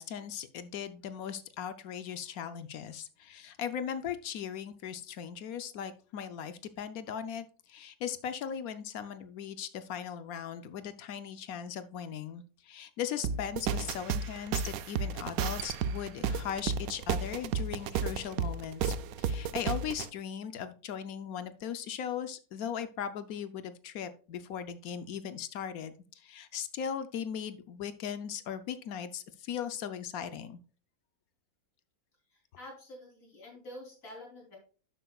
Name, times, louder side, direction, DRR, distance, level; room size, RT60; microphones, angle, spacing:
voice 1, 0.0-30.6, left 8 dB, 80° left, 11 dB, 1.2 m, -38 dB
sound 1, 13.2-20.1, right 6 dB, 80° right, 1.0 m, -33 dB
voice 2, 32.3-34.6, left 1 dB, 65° left, -1 dB, 3.9 m, -48 dB
11.0 x 7.8 x 2.3 m, 0.39 s
omnidirectional pair, 1.5 m